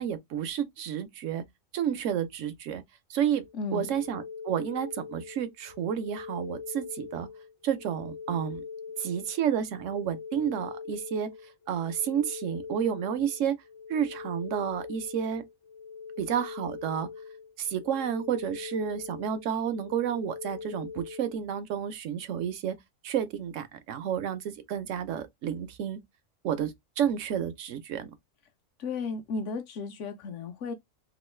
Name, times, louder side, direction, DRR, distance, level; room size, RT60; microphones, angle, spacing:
voice 1, 0.0-1.4 1.7-2.8 3.1-3.4 3.7-7.3 7.6-8.6 9.0-11.3 11.7-13.6 13.9-15.4 16.2-17.1 17.6-22.8 23.0-26.0 26.4-28.1, right 9 dB, 70° right, 0.9 m, -30 dB
sound 1, 3.4-21.4, left 5 dB, 25° left, 0.5 m, -42 dB
voice 2, 3.5-3.9 28.8-30.7, left 4 dB, 65° left, 1.0 m, -34 dB
3.1 x 2.4 x 3.0 m
omnidirectional pair, 1.4 m